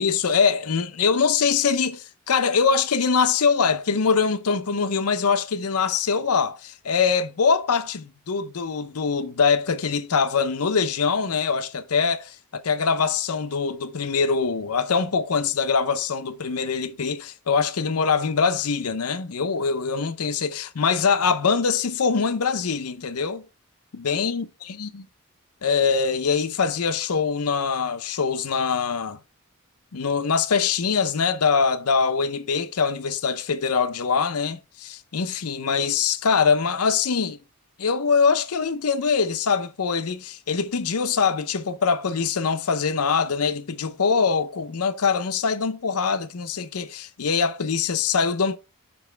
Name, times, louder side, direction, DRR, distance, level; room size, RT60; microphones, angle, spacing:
voice 1, 0.0-23.4 23.9-25.0 25.6-29.2 29.9-37.4 37.8-48.6, left 5 dB, 85° left, 0.7 m, -23 dB
7.1 x 5.4 x 3.3 m
head